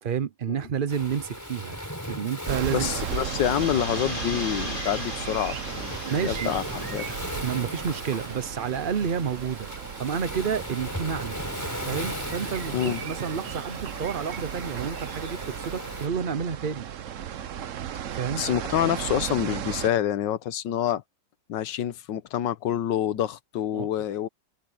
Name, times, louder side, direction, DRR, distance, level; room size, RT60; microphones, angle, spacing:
voice 1, 0.0-1.8 2.1-2.9 6.0-6.5 7.4-9.7 10.0-11.4 11.8-16.9 18.2-18.4 23.7-23.9, right 7 dB, 75° right, 0.4 m, -30 dB
Waves surf, 0.9-16.1, equal, 10° left, 5.8 m, -38 dB
sound 1, 2.5-19.9, right 9 dB, 55° right, 0.9 m, -35 dB
voice 2, 2.7-7.2 12.7-13.0 18.4-21.0 21.5-24.3, left 11 dB, 75° left, 1.6 m, -27 dB
sound 2, 2.9-8.5, left 2 dB, 25° left, 3.8 m, -38 dB
omnidirectional pair, 2.0 m